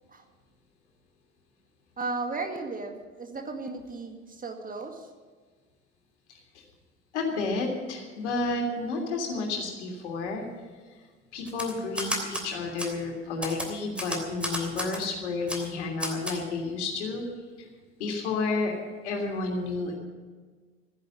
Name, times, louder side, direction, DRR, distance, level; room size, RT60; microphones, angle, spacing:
voice 1, 2.0-5.1, right 3 dB, 25° right, 4 dB, 2.1 m, -35 dB
voice 2, 7.1-10.4 11.3-17.3 17.6-17.7 18.0-20.0, left 3 dB, 70° left, 1 dB, 3.2 m, -31 dB
Typewriter, 11.5-12.5 12.8-12.9 13.4-15.1 15.5-15.7 16.0-16.4, equal, 5° right, 3.1 m, -32 dB
15.0 x 10.5 x 7.6 m, 1.4 s
figure-of-eight pair, 65°, 36 cm